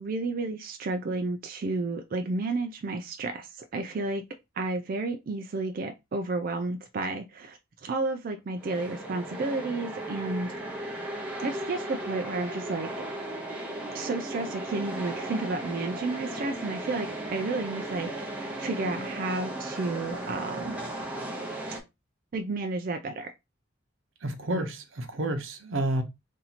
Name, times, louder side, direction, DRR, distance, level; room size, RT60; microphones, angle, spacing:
voice 1, 0.0-4.2 4.6-10.5 11.4-12.9 13.9-20.8 22.3-23.3, right 3 dB, 45° right, 0.4 m, -32 dB
sound 1, 8.6-21.8, right 1 dB, 10° right, 0.7 m, -36 dB
voice 2, 24.2-26.0, right 1 dB, 85° right, 0.8 m, -30 dB
2.9 x 2.6 x 4.0 m
head